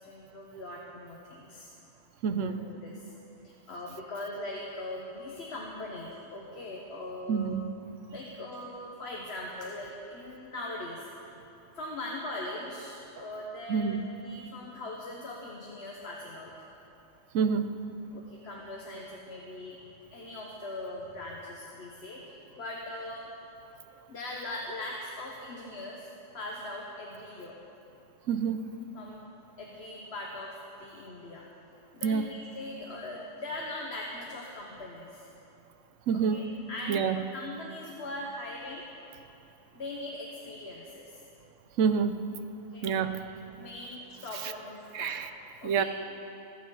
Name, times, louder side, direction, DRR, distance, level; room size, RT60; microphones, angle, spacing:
voice 1, 0.0-1.7 2.4-3.0 3.4-7.6 8.1-11.1 11.8-16.5 18.1-19.8 20.1-23.3 24.1-27.6 28.9-29.2 29.6-31.5 31.9-35.3 36.1-38.9 39.7-41.1 42.7-43.1 43.6-45.2 45.6-45.8, left 1 dB, 55° left, -2 dB, 1.4 m, -40 dB
voice 2, 2.2-2.6 7.3-7.6 13.7-14.0 17.3-17.7 28.3-28.6 32.0-32.3 36.1-36.4 36.9-37.2 41.8-42.2 42.8-43.2 44.9-45.3 45.6-45.8, right 6 dB, 75° right, 10 dB, 1.0 m, -27 dB
26.5 x 9.0 x 3.9 m, 2.8 s
omnidirectional pair, 1.3 m